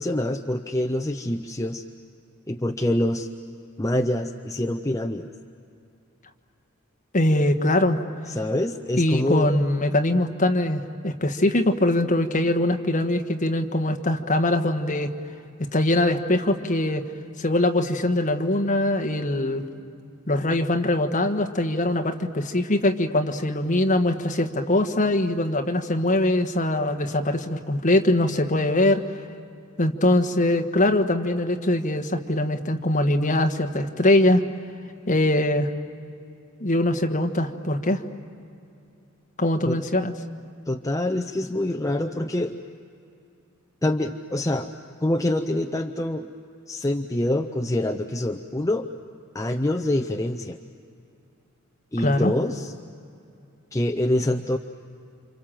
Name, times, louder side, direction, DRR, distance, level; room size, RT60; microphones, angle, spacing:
voice 1, 0.0-1.8 2.5-3.3 3.8-5.3 8.3-9.5 39.7-39.8 40.7-42.6 43.8-44.7 45.0-46.3 46.7-48.9 49.3-50.6 51.9-52.7 53.7-54.6, left 1 dB, 15° left, 5 dB, 0.6 m, -25 dB
voice 2, 7.1-8.0 9.0-15.1 15.7-17.0 17.4-19.6 20.3-29.0 29.8-34.4 35.1-35.7 36.6-38.0 39.4-40.1 52.0-52.3, left 1 dB, 35° left, 6 dB, 1.4 m, -22 dB
29.5 x 27.0 x 7.6 m, 2.6 s
head